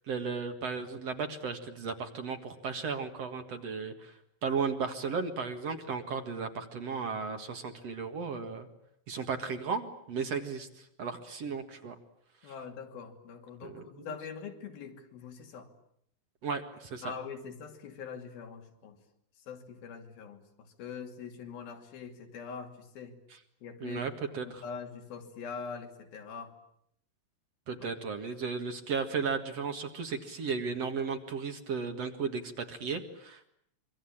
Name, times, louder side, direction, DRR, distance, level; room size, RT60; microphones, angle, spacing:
voice 1, 0.1-4.1 4.4-8.7 9.1-12.0 13.6-14.1 16.4-17.1 23.8-24.6 27.7-33.5, right 5 dB, 50° right, 6 dB, 2.6 m, -35 dB
voice 2, 12.4-15.7 17.0-19.0 19.5-23.2 23.6-24.0 24.4-26.6, left 6 dB, 85° left, 4 dB, 4.6 m, -43 dB
25.5 x 24.5 x 8.7 m, 0.70 s
omnidirectional pair, 4.1 m